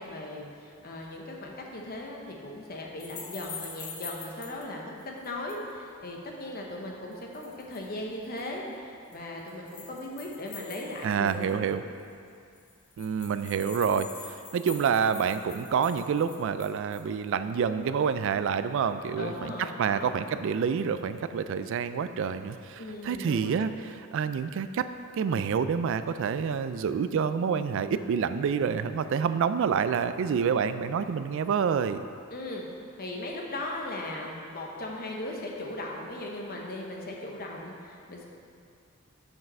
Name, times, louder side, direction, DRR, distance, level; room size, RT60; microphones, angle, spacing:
voice 1, 0.0-11.6 19.2-20.1 22.8-23.6 32.3-32.6 33.0-38.3, left 1 dB, 45° left, 0 dB, 0.9 m, -38 dB
sound 1, 3.0-4.6 5.0-5.7 7.1-7.9 8.2-8.5 9.1-11.6 12.0-12.1 12.3-12.4 12.6-17.1, left 5 dB, 85° left, 1.2 m, -44 dB
voice 2, 11.0-11.8 13.0-14.1 14.5-19.5 19.8-24.9 25.2-32.0, right 6 dB, 65° right, 11 dB, 0.3 m, -28 dB
5.8 x 5.4 x 5.4 m, 2.4 s
head